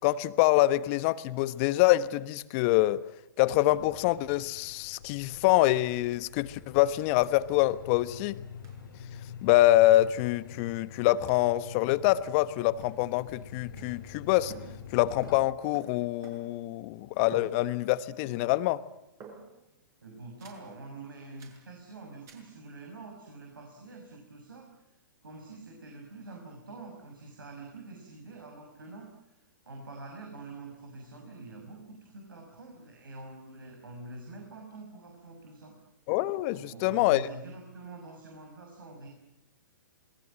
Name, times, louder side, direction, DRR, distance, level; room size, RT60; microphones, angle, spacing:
voice 1, 0.0-3.0 3.4-8.4 9.4-14.5 14.9-18.8 36.1-37.2, left 16 dB, 40° left, 1.2 m, -25 dB
sound 1, 3.7-15.4, left 7 dB, 75° left, 2.6 m, -47 dB
sound 2, 7.2-7.3 7.6-7.7 8.6-8.9 9.9-10.2 11.3-11.5 12.2-12.5 12.8-14.2 14.5-16.7 17.3-18.0 18.2-18.7 19.2-19.7 20.4-20.7 21.4-21.7 22.3-22.5, right 5 dB, 25° right, 6.6 m, -52 dB
voice 2, 20.0-25.0 25.2-35.8 36.5-39.1, right 2 dB, 80° right, 6.5 m, -46 dB
27.5 x 21.0 x 7.6 m
hypercardioid pair, 120°, 11 cm